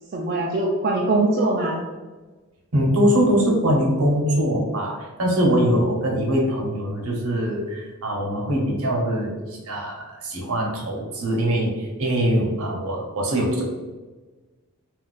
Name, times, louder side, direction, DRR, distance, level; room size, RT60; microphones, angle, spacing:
voice 1, 0.1-1.8 13.3-13.7, right 2 dB, 45° right, -2 dB, 0.3 m, -23 dB
voice 2, 2.7-13.7, equal, 70° right, -1 dB, 0.8 m, -22 dB
2.4 x 2.2 x 3.8 m, 1.3 s
head